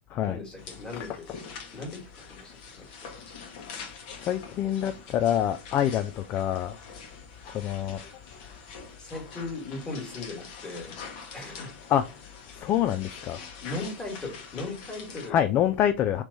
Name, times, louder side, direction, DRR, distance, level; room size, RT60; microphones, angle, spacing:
voice 1, 0.3-1.2 1.7-2.9 3.3-3.4 9.0-10.9 11.2-11.7 13.6-15.4, left 3 dB, 10° left, 1.7 m, -38 dB
sound 1, 0.6-15.3, left 5 dB, 50° left, 1.2 m, -44 dB
voice 2, 4.2-6.8 7.5-8.0 11.9-12.1 12.5-13.4 15.3-16.2, left 10 dB, 30° left, 0.3 m, -26 dB
3.2 x 3.0 x 3.9 m
figure-of-eight pair, 100°, 6 cm